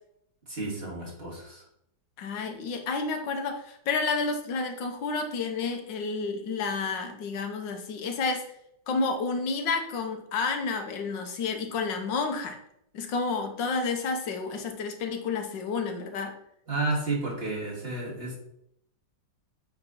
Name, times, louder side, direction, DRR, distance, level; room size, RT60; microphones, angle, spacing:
voice 1, 0.5-1.6 16.7-18.4, right 2 dB, 35° right, -6 dB, 2.7 m, -31 dB
voice 2, 2.2-8.4 8.9-12.6 12.9-16.3, left 4 dB, 90° left, 5 dB, 1.6 m, -30 dB
8.6 x 3.6 x 4.2 m, 0.74 s
omnidirectional pair, 1.9 m